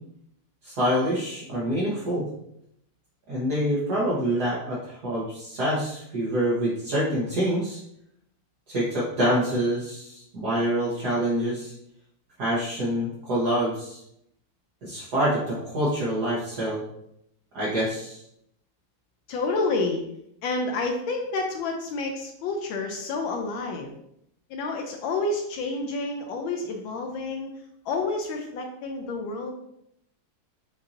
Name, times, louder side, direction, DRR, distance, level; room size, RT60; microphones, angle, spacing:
voice 1, 0.6-2.3 3.3-7.8 8.7-11.7 12.4-14.0 14.8-16.8 17.5-18.2, equal, 55° right, -8 dB, 1.5 m, -26 dB
voice 2, 19.3-20.0 20.4-23.9 24.5-27.5 27.8-29.5, left 3 dB, 75° left, 2 dB, 1.3 m, -29 dB
7.0 x 2.6 x 2.5 m, 0.76 s
omnidirectional pair, 2.2 m